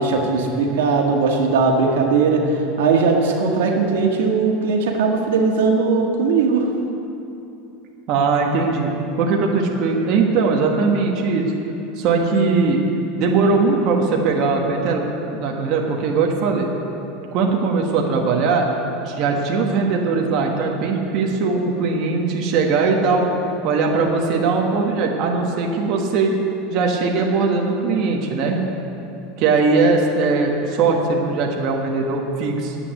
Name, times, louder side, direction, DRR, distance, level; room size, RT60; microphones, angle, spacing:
voice 1, 0.0-6.7, right 4 dB, 90° right, 1 dB, 1.6 m, -19 dB
voice 2, 8.1-8.9 9.2-11.4 12.0-12.8 13.2-15.0 15.3-16.7 17.3-18.7 19.0-23.3 23.6-26.3 26.7-28.6 29.4-32.8, right 4 dB, 45° right, 0 dB, 1.3 m, -20 dB
9.6 x 8.4 x 9.4 m, 2.9 s
supercardioid pair, 160°, 0 cm